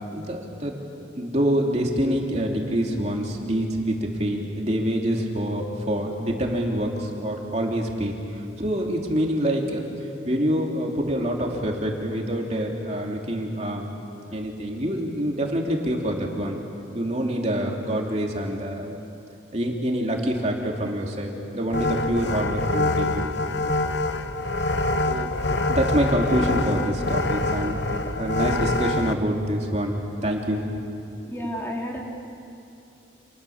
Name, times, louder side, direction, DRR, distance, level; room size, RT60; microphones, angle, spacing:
voice 1, 0.1-0.8 1.1-9.9 10.2-13.9 14.3-16.6 16.9-18.9 19.5-23.3 25.1-25.3 25.7-27.8 28.2-30.0 30.2-30.7 31.3-31.4, equal, 35° right, 0 dB, 3.0 m, -26 dB
sound 1, 21.7-29.1, left 2 dB, 75° left, 1.2 m, -25 dB
voice 2, 31.2-32.0, equal, 15° left, -1 dB, 3.0 m, -32 dB
29.5 x 28.0 x 7.3 m, 2.7 s
head